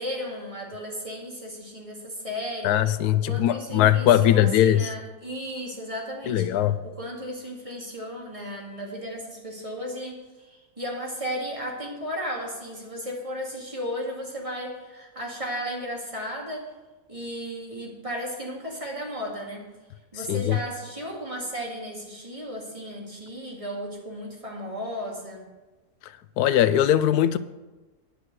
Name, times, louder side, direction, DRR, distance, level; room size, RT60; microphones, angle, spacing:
voice 1, 0.0-2.8 3.1-6.5 6.8-16.6 17.1-19.7 20.1-25.5, equal, 20° right, 2.2 m, -34 dB
voice 2, 2.6-4.9 6.3-6.8 20.3-20.6 26.4-27.4, left 11 dB, 90° left, 1.1 m, -20 dB
10.0 x 6.2 x 8.0 m
omnidirectional pair, 1.6 m